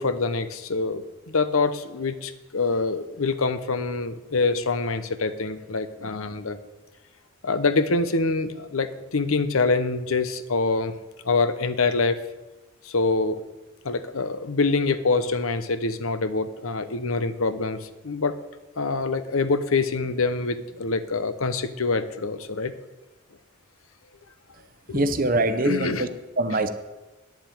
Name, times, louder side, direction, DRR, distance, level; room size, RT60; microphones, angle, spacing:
voice 1, 0.0-6.6 7.4-10.9 11.2-12.2 12.8-13.4 13.8-18.4 18.8-22.7 24.9-25.1 25.6-26.1 26.5-26.6, left 3 dB, 80° left, 12 dB, 0.8 m, -25 dB
voice 2, 24.9-26.1 26.4-26.7, right 2 dB, 40° right, 10 dB, 0.8 m, -23 dB
9.2 x 7.5 x 9.2 m, 1.1 s
head